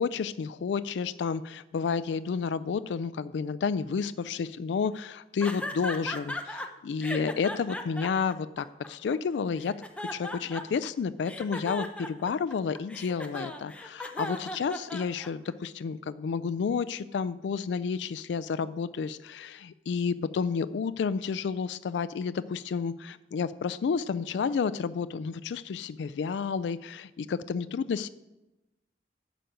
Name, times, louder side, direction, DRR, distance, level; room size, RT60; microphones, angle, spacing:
voice 1, 0.0-9.7 10.1-28.1, left 5 dB, 85° left, 15 dB, 0.3 m, -31 dB
sound 1, 5.4-6.7 7.0-9.1 9.6-10.9 11.2-15.5, left 1 dB, 5° left, 0.7 m, -37 dB
11.5 x 5.1 x 7.7 m, 0.99 s
head